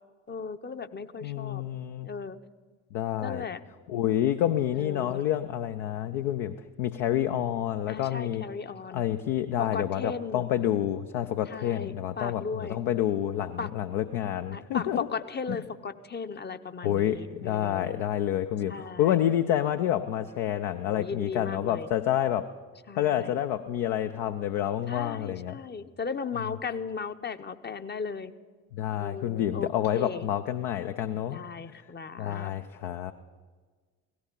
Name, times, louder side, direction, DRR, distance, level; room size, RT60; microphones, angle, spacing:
voice 1, 0.3-1.6 2.0-2.4 3.2-3.6 4.7-5.2 7.9-9.0 9.6-10.4 11.5-12.8 13.6-13.7 14.5-18.0 18.7-19.2 20.9-21.9 22.9-23.3 24.9-28.3 29.0-30.3 31.3-32.5, left 5 dB, 25° left, 10 dB, 0.8 m, -36 dB
voice 2, 1.2-2.1 2.9-3.5 3.9-8.5 8.9-15.1 15.5-15.6 16.8-22.5 23.0-25.6 28.7-31.4 32.2-33.1, left 11 dB, 65° left, 7 dB, 0.7 m, -28 dB
17.0 x 14.0 x 5.3 m, 1.5 s
figure-of-eight pair, 45°, 43 cm